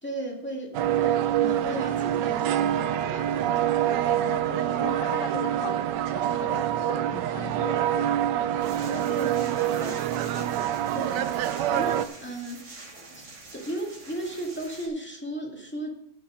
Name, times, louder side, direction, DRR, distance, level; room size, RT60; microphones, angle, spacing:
voice 1, 0.0-3.3 9.1-9.6 10.9-11.4 11.7-13.3 13.5-15.9, right 1 dB, 5° left, -1 dB, 2.0 m, -35 dB
sound 1, 0.7-12.1, right 11 dB, 70° right, 1.1 m, -26 dB
voice 2, 3.9-8.2 8.8-10.0, left 9 dB, 75° left, 13 dB, 1.3 m, -40 dB
sound 2, 8.6-14.9, right 3 dB, 85° right, 3.3 m, -46 dB
11.0 x 6.1 x 6.3 m, 0.73 s
omnidirectional pair, 2.2 m